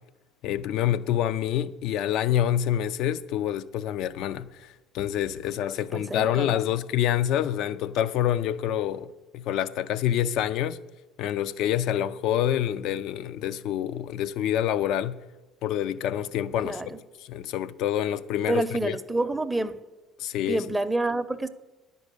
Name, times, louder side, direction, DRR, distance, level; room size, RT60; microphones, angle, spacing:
voice 1, 0.4-10.8 11.2-15.2 15.6-16.8 17.2-19.0 20.2-20.6, left 11 dB, 65° left, 0.4 m, -27 dB
voice 2, 5.9-6.6 16.6-17.0 18.5-19.8 20.4-21.5, right 2 dB, 10° right, 0.6 m, -28 dB
10.5 x 5.4 x 8.3 m
hypercardioid pair, 70°, 0 cm